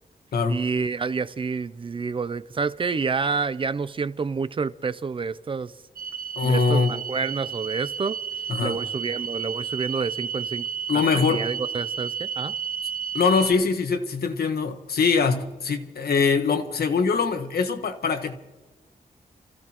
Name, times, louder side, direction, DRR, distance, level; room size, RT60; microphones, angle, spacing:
voice 1, 0.5-5.8 6.4-8.2 8.6-10.7 10.9-11.0 11.3-12.5, right 5 dB, 35° right, 0.4 m, -28 dB
sound 1, 6.0-13.5, right 7 dB, 75° right, 0.7 m, -32 dB
voice 2, 6.4-7.0 8.5-8.8 10.9-11.5 13.1-18.3, left 5 dB, 85° left, 1.3 m, -23 dB
29.5 x 15.0 x 3.0 m
wide cardioid pair, 175°, 16 cm